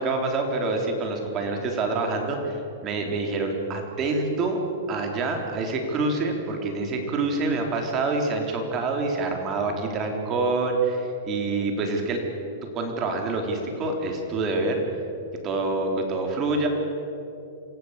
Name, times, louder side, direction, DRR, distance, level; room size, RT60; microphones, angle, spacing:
voice 1, 0.0-4.6 4.9-12.2 12.7-14.8 15.4-16.7, right 3 dB, 25° right, 2 dB, 3.9 m, -26 dB
26.0 x 16.5 x 8.3 m, 2.7 s
hypercardioid pair, 150°, 0 cm